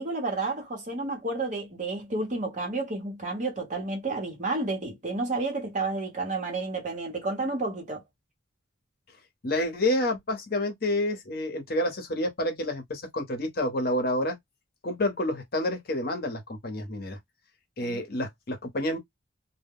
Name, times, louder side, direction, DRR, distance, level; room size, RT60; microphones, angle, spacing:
voice 1, 0.0-8.0 17.8-18.0, right 3 dB, 40° right, 0.9 m, -31 dB
voice 2, 9.4-14.4 14.8-17.2 17.8-19.0, left 1 dB, 55° left, 0.8 m, -29 dB
2.1 x 2.1 x 3.4 m
head